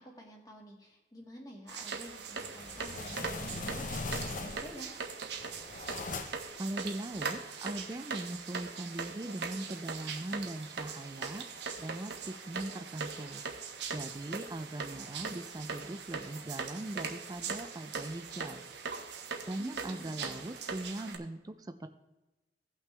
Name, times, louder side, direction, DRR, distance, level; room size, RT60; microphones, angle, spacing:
voice 1, 0.0-4.9 19.6-20.4, equal, 20° left, 0 dB, 1.8 m, -50 dB
sound 1, 1.7-21.2, right 5 dB, 70° right, 1.0 m, -40 dB
sound 2, 2.4-4.9 5.3-6.6, left 3 dB, 45° left, 0.7 m, -40 dB
voice 2, 6.6-11.5 11.8-13.4 13.9-18.6 19.5-21.9, right 1 dB, 20° right, 10 dB, 0.4 m, -40 dB
17.0 x 5.9 x 3.3 m, 1.0 s
head